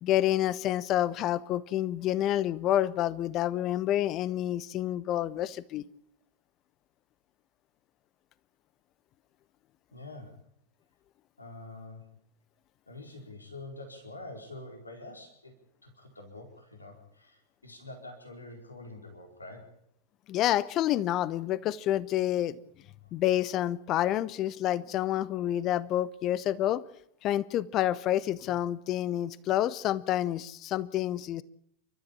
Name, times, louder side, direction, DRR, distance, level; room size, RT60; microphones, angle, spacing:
voice 1, 0.0-5.8 20.3-22.6 23.1-26.8 27.2-31.4, left 12 dB, 35° left, 19 dB, 1.0 m, -28 dB
voice 2, 9.9-10.4 11.4-12.1 12.9-15.5 15.8-19.7 23.0-23.1, left 2 dB, 80° left, 3 dB, 4.5 m, -46 dB
30.0 x 13.5 x 8.7 m, 0.70 s
figure-of-eight pair, 90°, 0 cm